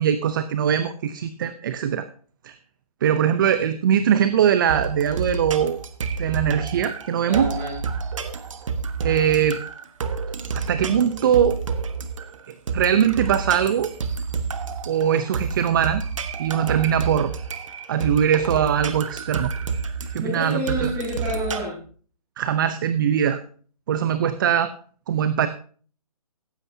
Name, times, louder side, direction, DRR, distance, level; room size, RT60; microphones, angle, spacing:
voice 1, 0.0-2.1 2.4-2.6 3.0-5.8 6.2-7.5 9.0-9.6 10.5-11.6 12.5-13.9 14.9-16.0 16.4-17.3 17.9-19.5 20.1-20.9 22.4-23.4 23.9-24.7 25.1-25.5, right 9 dB, 30° right, 12 dB, 0.7 m, -21 dB
sound 1, 4.7-21.6, right 5 dB, 50° right, 1.5 m, -29 dB
voice 2, 7.3-7.8 20.0-21.8, equal, 15° right, -3 dB, 7.8 m, -29 dB
16.0 x 14.0 x 2.8 m, 0.43 s
hypercardioid pair, 155°, 20 cm